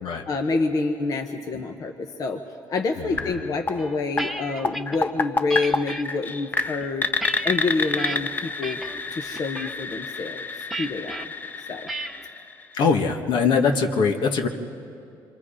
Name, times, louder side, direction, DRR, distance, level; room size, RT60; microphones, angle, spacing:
voice 1, 0.3-2.4 2.7-7.1 7.4-8.8 9.1-10.4 10.8-11.3 11.7-11.9, left 3 dB, 45° left, 4 dB, 1.2 m, -27 dB
voice 2, 3.0-3.3 12.7-14.5, left 5 dB, 70° left, 4 dB, 1.5 m, -22 dB
sound 1, 3.2-13.0, left 3 dB, 20° left, 0.6 m, -30 dB
sound 2, 3.8-5.0 5.5-6.0 6.6-8.2 8.6-9.0 9.3-9.7 10.7-11.2 11.9-12.3, right 2 dB, ahead, 1.0 m, -34 dB
26.5 x 25.0 x 5.0 m, 2.6 s
cardioid pair, 125°, 8 cm